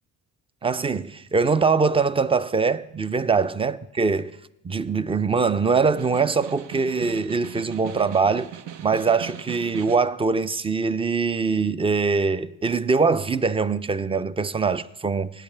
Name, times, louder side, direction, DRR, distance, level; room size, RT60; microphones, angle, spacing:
voice 1, 0.6-4.3 4.6-8.5 8.8-15.4, right 4 dB, 15° right, 0.3 m, -23 dB
Snare drum, 5.7-10.2, right 11 dB, 90° right, 0.6 m, -39 dB
17.5 x 9.7 x 3.3 m
cardioid pair, 95°, 40 cm